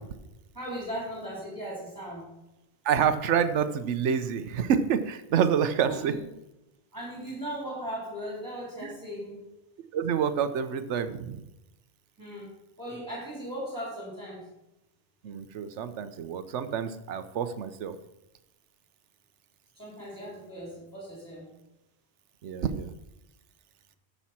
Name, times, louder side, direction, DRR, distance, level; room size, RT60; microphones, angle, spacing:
voice 1, 0.5-2.3 5.8-6.2 6.9-9.4 12.2-12.5 12.8-14.5 19.8-21.5, equal, 15° right, -5 dB, 3.6 m, -38 dB
voice 2, 2.8-6.1 8.8-8.9 9.9-11.4 15.2-18.0 22.4-22.9, right 7 dB, 85° right, 11 dB, 1.0 m, -27 dB
14.0 x 5.7 x 4.3 m, 0.93 s
omnidirectional pair, 1.2 m